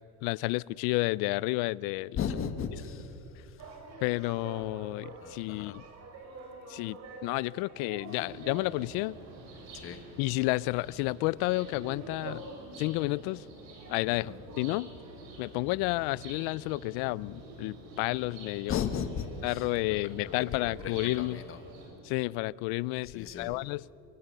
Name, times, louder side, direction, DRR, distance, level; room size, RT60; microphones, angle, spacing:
voice 1, 0.2-2.2 4.0-5.8 6.7-9.2 10.2-12.4 12.8-13.4 13.9-14.9 15.4-18.9 19.4-21.4 22.0-23.8, left 21 dB, 80° left, 23 dB, 0.5 m, -31 dB
voice 2, 2.2-3.8 5.2-5.8 9.7-10.0 14.1-14.3 18.7-20.3 20.6-21.6 23.0-23.6, left 7 dB, 35° left, 8 dB, 1.4 m, -37 dB
sound 1, 3.6-21.1, right 3 dB, 45° right, 4.0 m, -50 dB
sound 2, 8.1-21.9, right 2 dB, 90° right, 7.7 m, -49 dB
23.5 x 23.0 x 6.7 m, 2.9 s
cardioid pair, 155°, 36 cm